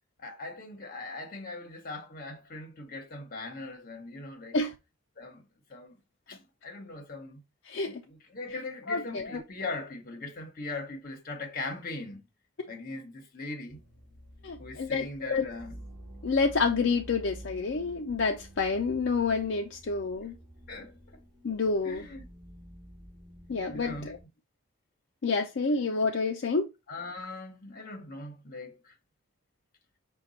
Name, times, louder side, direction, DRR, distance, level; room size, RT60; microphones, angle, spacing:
voice 1, 0.2-4.6 5.2-5.4 5.7-6.0 6.3-7.4 7.9-12.3 12.7-13.8 14.6-15.9 20.7-21.2 21.8-22.2 23.7-24.1 26.9-28.9, left 2 dB, 45° left, 1.0 m, -40 dB
voice 2, 7.7-8.0 8.9-9.4 14.4-15.5 16.2-20.3 21.4-22.0 23.5-24.2 25.2-26.7, left 4 dB, 60° left, 0.5 m, -28 dB
sound 1, 13.7-24.2, right 1 dB, ahead, 3.3 m, -49 dB
5.8 x 2.3 x 4.0 m
head